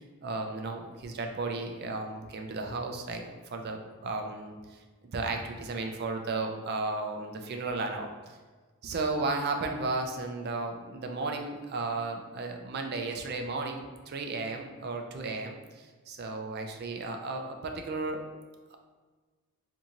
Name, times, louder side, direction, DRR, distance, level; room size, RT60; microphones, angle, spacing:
voice 1, 0.2-4.6 5.1-8.1 8.8-18.2, right 3 dB, 45° right, 4 dB, 0.4 m, -34 dB
3.6 x 2.7 x 2.9 m, 1.4 s
head